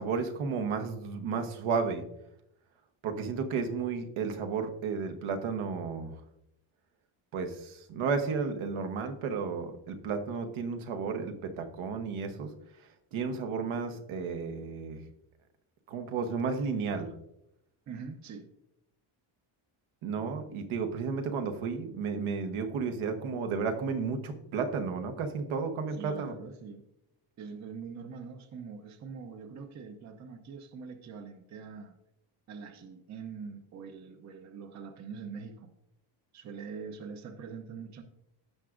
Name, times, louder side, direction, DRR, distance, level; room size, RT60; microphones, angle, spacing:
voice 1, 0.0-2.0 3.0-6.2 7.3-12.5 13.1-15.0 15.9-17.1 20.0-26.3, right 5 dB, 70° right, 6 dB, 1.2 m, -33 dB
voice 2, 17.9-18.5 25.9-26.9 27.4-32.0 32.5-35.7 36.3-38.0, right 5 dB, 35° right, 7 dB, 0.7 m, -43 dB
16.0 x 5.9 x 2.5 m, 0.81 s
cardioid pair, 175°, 50 cm